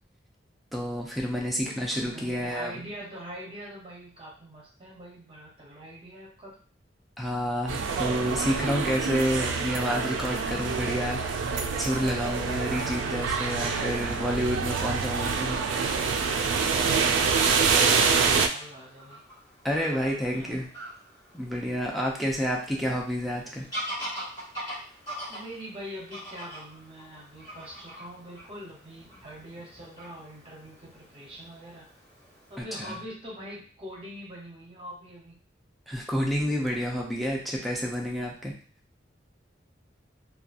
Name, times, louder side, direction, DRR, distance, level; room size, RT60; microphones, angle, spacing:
voice 1, 0.7-2.8 7.2-11.2 11.8-15.6 19.6-20.7 21.3-23.7 32.6-32.9 35.9-38.5, equal, ahead, -2 dB, 0.5 m, -29 dB
voice 2, 1.5-6.6 12.2-13.8 16.4-19.2 19.8-20.6 25.3-31.9 32.5-35.4, equal, 30° right, -4 dB, 0.7 m, -44 dB
sound 1, 7.7-18.5, right 5 dB, 85° right, 0.3 m, -26 dB
Fowl / Bird vocalization bird call bird song, 16.9-32.6, equal, 20° left, 1.0 m, -43 dB
2.8 x 2.3 x 2.4 m, 0.43 s
head